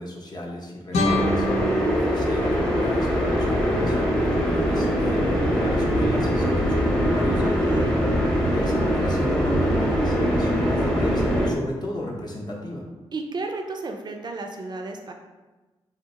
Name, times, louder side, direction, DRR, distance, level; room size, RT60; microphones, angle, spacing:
voice 1, 0.0-1.5 1.9-7.4 8.5-12.9, left 1 dB, 35° left, -2 dB, 0.7 m, -34 dB
sound 1, 0.9-3.9, left 1 dB, 85° left, 0.6 m, -29 dB
sound 2, 1.0-11.5, equal, 5° left, 0.8 m, -22 dB
voice 2, 7.4-8.0 13.1-15.1, right 3 dB, 40° right, 3 dB, 0.4 m, -33 dB
2.9 x 2.0 x 3.6 m, 1.2 s
cardioid pair, 55°, 11 cm